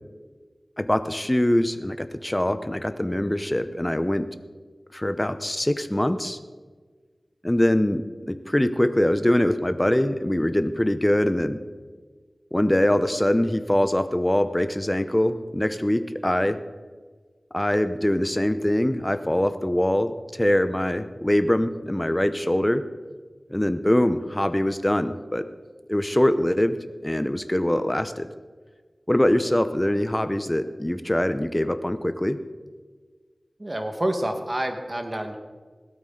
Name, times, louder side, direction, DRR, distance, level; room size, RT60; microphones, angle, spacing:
voice 1, 0.8-4.3 4.9-6.4 7.4-11.6 12.5-16.6 17.5-22.8 23.5-25.5 25.9-28.3 29.1-32.4, left 1 dB, 15° left, 11 dB, 0.7 m, -23 dB
voice 2, 33.6-35.4, right 1 dB, 35° right, 5 dB, 1.4 m, -28 dB
16.5 x 13.0 x 3.8 m, 1.5 s
wide cardioid pair, 65°, 0 cm